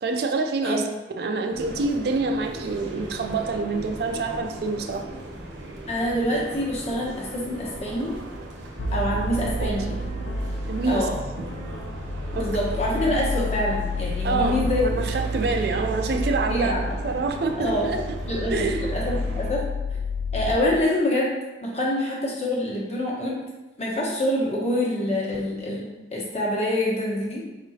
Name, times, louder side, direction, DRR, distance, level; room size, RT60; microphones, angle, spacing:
voice 1, 0.0-0.9 1.2-5.1 9.4-10.0 10.7-11.1 11.4-11.5 12.3-12.5 14.2-16.7 17.0-18.2 18.5-18.9, right 3 dB, 55° right, 5 dB, 0.4 m, -26 dB
sound 1, 1.5-19.5, right 1 dB, 85° right, 0.8 m, -38 dB
voice 2, 5.9-8.1 8.9-9.9 10.8-11.1 12.3-15.1 16.5-16.9 17.6-17.9 18.3-18.5 18.8-19.6 20.3-21.3 21.6-23.4 23.8-25.9 26.1-27.4, left 1 dB, 35° left, -4 dB, 1.1 m, -26 dB
sound 2, 8.8-20.5, left 1 dB, 75° left, 0.5 m, -30 dB
4.7 x 4.0 x 2.8 m, 1.1 s
head